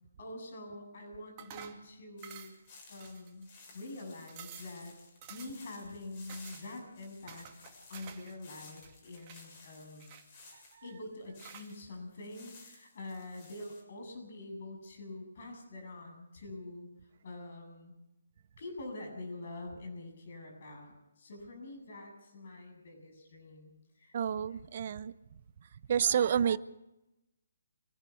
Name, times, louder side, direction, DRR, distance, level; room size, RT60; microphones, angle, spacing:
voice 1, 0.2-2.5 2.9-3.5 3.7-4.9 5.3-7.5 7.9-10.0 10.8-16.9 17.2-18.0 18.6-24.1, left 2 dB, 50° left, 3 dB, 7.9 m, -45 dB
sound 1, 1.4-1.8 2.2-2.7 3.0-3.6 4.0-4.1 4.3-4.8 5.2-5.7 6.3-6.6 7.3-8.3 8.6-9.4 10.0-10.7 11.4-11.7, right 9 dB, 30° right, 2.3 m, -51 dB
sound 2, 2.2-11.9 12.2-13.8, left 3 dB, 35° left, 7.3 m, -56 dB
voice 2, 24.1-25.1 25.9-26.6, right 8 dB, 45° right, 17 dB, 0.9 m, -29 dB
26.0 x 11.0 x 9.5 m, 0.91 s
figure-of-eight pair, 140°, 0 cm